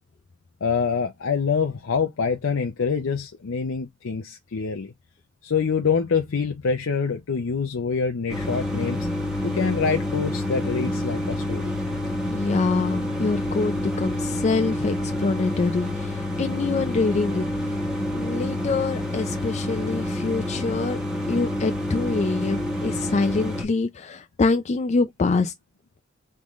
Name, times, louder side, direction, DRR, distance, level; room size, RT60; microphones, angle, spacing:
voice 1, 0.6-4.9 5.4-9.1 9.4-11.7, left 5 dB, 80° left, 0.6 m, -25 dB
sound 1, 8.3-23.6, left 1 dB, 5° right, 1.1 m, -28 dB
voice 2, 12.3-17.5 18.1-21.0 21.3-25.5, left 3 dB, 35° left, 0.4 m, -25 dB
3.7 x 3.6 x 3.1 m
head